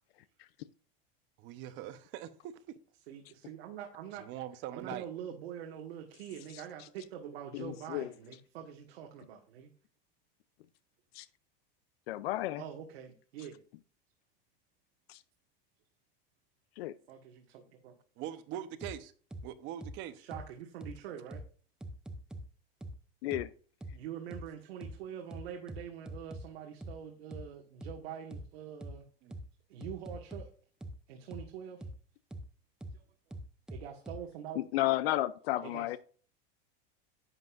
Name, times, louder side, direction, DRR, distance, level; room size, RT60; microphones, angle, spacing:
voice 1, 1.4-2.5 4.2-5.0 18.2-19.1 19.4-20.2 29.2-29.3, right 11 dB, 40° right, 0.9 m, -42 dB
voice 2, 3.1-4.3 4.7-9.7 12.6-13.6 17.1-18.0 20.2-21.4 23.9-29.1 29.7-30.5 31.1-31.9 32.9-33.1 33.7-34.6 35.6-36.0, right 9 dB, 85° right, 1.9 m, -45 dB
voice 3, 7.6-8.1 11.1-11.2 12.1-12.6 15.1-15.2 16.8-16.9 23.2-23.5 34.6-36.0, left 15 dB, 80° left, 0.6 m, -32 dB
sound 1, 18.8-18.9 19.3-19.4 19.8-19.9 20.3-20.4 20.8-20.9 21.3-21.4 21.8-22.4 22.8-22.9 23.3-23.4 23.8-23.9 24.3-24.4 24.8-24.9 25.3-26.4 26.8-26.9 27.3-27.4 27.8-27.9 28.3-28.4 28.8-28.9 29.3-29.4 29.8-30.4 30.8-30.9 31.3-31.4 31.8-31.9 32.3-32.4 32.8-32.9 33.3-34.2, right 1 dB, 5° right, 0.5 m, -43 dB
11.0 x 7.7 x 2.6 m
supercardioid pair, 160°, 30 cm